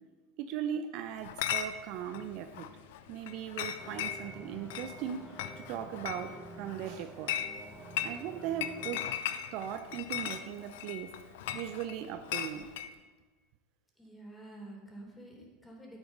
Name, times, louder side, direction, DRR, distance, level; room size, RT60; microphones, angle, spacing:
voice 1, 0.4-2.7 3.1-5.3 5.6-7.3 8.0-9.2 9.5-11.1 11.5-12.7, right 9 dB, 55° right, 9 dB, 0.6 m, -38 dB
Chatter / Chink clink, 1.2-12.9, left 10 dB, 65° left, 0.6 m, -39 dB
sound 1, 3.8-9.2, right 2 dB, 20° right, 0.9 m, -49 dB
voice 2, 14.0-16.0, right 1 dB, 10° left, -1 dB, 3.5 m, -49 dB
8.9 x 8.7 x 5.3 m, 1.3 s
hypercardioid pair, 85°, 0 cm